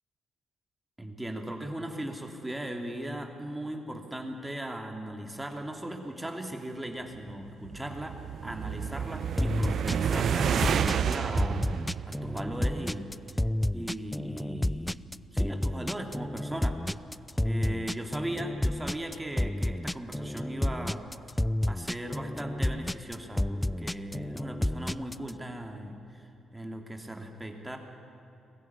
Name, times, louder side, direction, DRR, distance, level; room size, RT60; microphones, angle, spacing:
voice 1, 1.0-8.2 8.4-13.1 13.7-16.8 17.4-21.0 21.7-27.8, right 1 dB, 15° right, 3 dB, 2.8 m, -38 dB
sound 1, 7.5-13.0, right 7 dB, 60° right, 0.7 m, -30 dB
sound 2, 9.4-25.3, left 1 dB, 10° left, 0.5 m, -30 dB
22.5 x 15.0 x 9.7 m, 2.9 s
hypercardioid pair, 45°, 0 cm